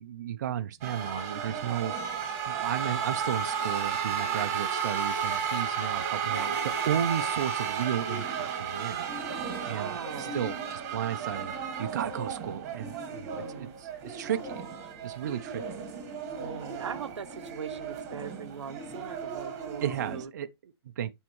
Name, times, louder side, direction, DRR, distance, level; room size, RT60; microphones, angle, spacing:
voice 1, 0.0-1.9 2.5-14.6 15.0-15.9 19.8-21.1, right 9 dB, 40° right, 0.4 m, -34 dB
sound 1, 0.8-20.2, right 7 dB, 20° right, 1.3 m, -34 dB
voice 2, 9.4-10.4 13.2-13.7 16.4-20.3, right 7 dB, 90° right, 0.7 m, -41 dB
10.5 x 3.6 x 3.0 m
hypercardioid pair, 165°, 15 cm